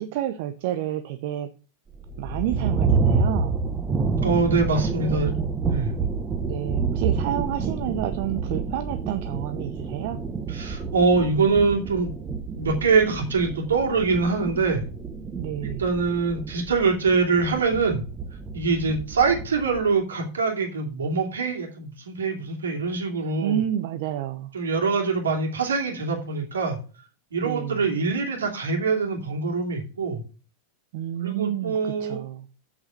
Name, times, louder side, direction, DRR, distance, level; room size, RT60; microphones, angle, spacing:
voice 1, 0.0-1.5 2.2-3.5 5.0-5.2 6.4-10.2 15.4-15.9 23.4-24.5 27.4-27.9 30.9-32.5, right 11 dB, 50° right, 9 dB, 0.8 m, -29 dB
sound 1, 1.9-19.9, right 5 dB, 20° right, 1.4 m, -28 dB
voice 2, 4.2-5.3 5.7-5.9 10.5-12.1 12.6-14.8 15.6-18.0 18.5-23.6 24.5-26.8 27.3-30.2 31.2-32.2, right 4 dB, 70° right, 2 dB, 2.9 m, -24 dB
8.1 x 7.1 x 6.8 m, 0.37 s
figure-of-eight pair, 90°, 0 cm